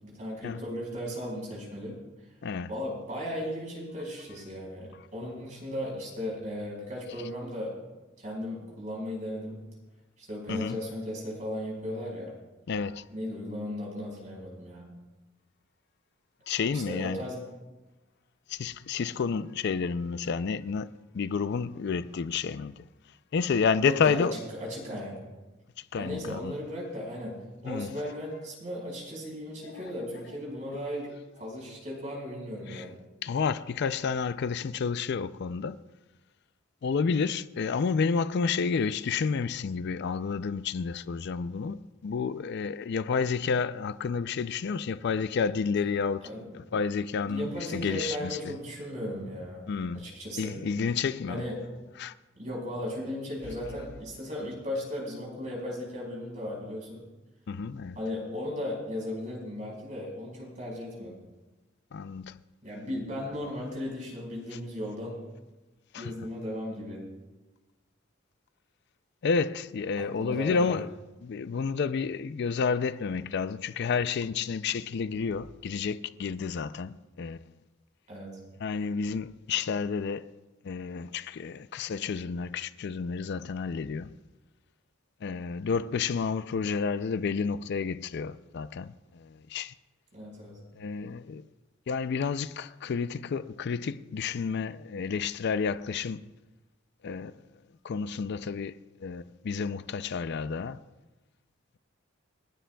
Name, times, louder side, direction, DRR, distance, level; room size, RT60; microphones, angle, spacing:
voice 1, 0.0-2.0 2.7-7.7 8.2-9.6 10.2-12.4 13.1-14.9 16.7-17.4 23.8-24.3 24.6-25.2 26.0-27.4 27.6-31.1 31.4-32.9 46.2-46.5 47.2-49.7 49.9-50.6 51.3-51.6 52.4-57.0 57.9-61.2 62.6-65.2 66.0-67.0 69.9-70.8 78.1-78.4 90.1-90.6, left 1 dB, 40° right, 5.0 m, -36 dB
voice 2, 12.7-13.1 16.5-17.2 18.5-22.8 23.3-24.4 25.9-26.5 27.6-27.9 29.7-29.8 32.7-32.9 33.2-35.8 36.8-46.3 46.5-48.4 49.7-50.0 50.4-51.4 52.0-52.1 57.5-58.0 61.9-62.4 65.9-66.1 69.2-70.9 71.2-77.4 78.6-80.3 80.6-84.1 85.2-89.7 90.8-91.4 91.9-96.2 97.0-97.3 97.8-100.8, left 5 dB, 55° left, 0.4 m, -30 dB
29.5 x 10.0 x 2.3 m
head